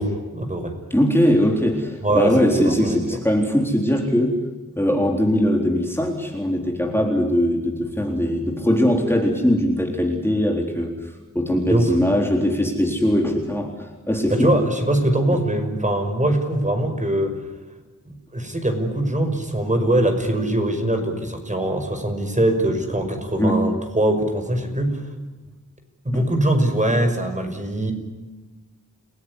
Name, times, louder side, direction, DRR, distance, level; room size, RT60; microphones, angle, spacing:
voice 1, 0.0-0.8 2.0-3.2 11.7-12.0 14.3-17.3 18.1-25.1 26.0-27.9, right 1 dB, 25° right, 5 dB, 5.9 m, -22 dB
voice 2, 0.9-4.4 4.8-10.9 11.3-14.5 23.4-23.6 26.1-26.3, equal, 5° left, 1 dB, 3.9 m, -21 dB
30.0 x 18.0 x 10.0 m, 1.2 s
wide cardioid pair, 75°, 31 cm